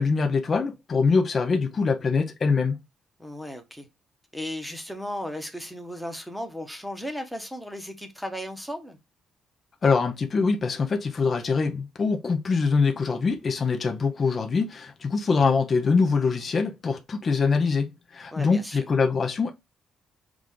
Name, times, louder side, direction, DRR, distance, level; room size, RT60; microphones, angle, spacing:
voice 1, 0.0-2.8 9.8-19.5, left 4 dB, 35° left, 0.5 m, -24 dB
voice 2, 3.2-3.9 4.3-9.0 18.3-18.8, equal, ahead, 0.9 m, -35 dB
6.0 x 2.5 x 3.5 m
cardioid pair, 135°, 0 cm